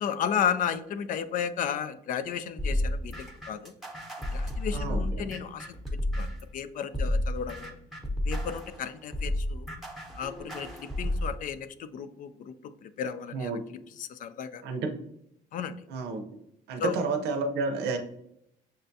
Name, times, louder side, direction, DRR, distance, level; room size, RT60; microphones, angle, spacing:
voice 1, 0.0-3.7 4.3-5.7 6.1-7.7 8.2-9.7 10.2-12.5 12.8-13.5 14.0-14.6 15.5-15.8 16.8-17.0, left 8 dB, 50° left, 12 dB, 0.4 m, -33 dB
sound 1, 2.6-6.5 6.9-11.3, left 1 dB, ahead, 0.8 m, -31 dB
voice 2, 4.7-5.3 13.3-13.6 14.6-14.9 15.9-16.2 16.7-18.0, right 3 dB, 80° right, 5 dB, 0.6 m, -30 dB
6.5 x 2.2 x 2.6 m, 0.75 s
cardioid pair, 110°, 17 cm